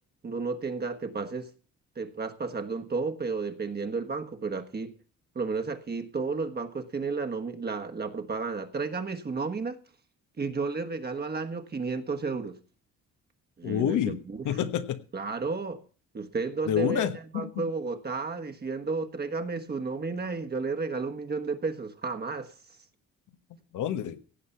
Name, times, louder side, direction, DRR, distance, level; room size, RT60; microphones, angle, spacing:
voice 1, 0.2-1.5 1.9-4.9 5.3-9.8 10.4-12.6 13.6-14.4 15.1-15.8 16.1-22.5, right 4 dB, 35° right, 5 dB, 1.4 m, -32 dB
voice 2, 13.6-14.2 14.4-15.0 16.7-17.6 23.7-24.2, left 10 dB, 80° left, 10 dB, 1.4 m, -28 dB
17.0 x 7.7 x 5.7 m, 0.39 s
cardioid pair, 90°, 30 cm